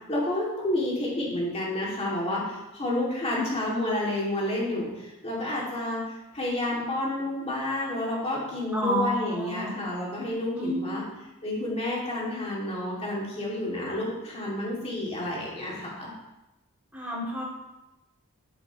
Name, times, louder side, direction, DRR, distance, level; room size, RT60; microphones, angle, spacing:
voice 1, 0.1-11.0 11.4-16.1, left 1 dB, 30° left, -4 dB, 2.4 m, -30 dB
voice 2, 8.7-9.7 10.6-11.0 16.9-17.4, equal, 5° right, -6 dB, 2.6 m, -29 dB
9.1 x 7.7 x 3.1 m, 0.98 s
head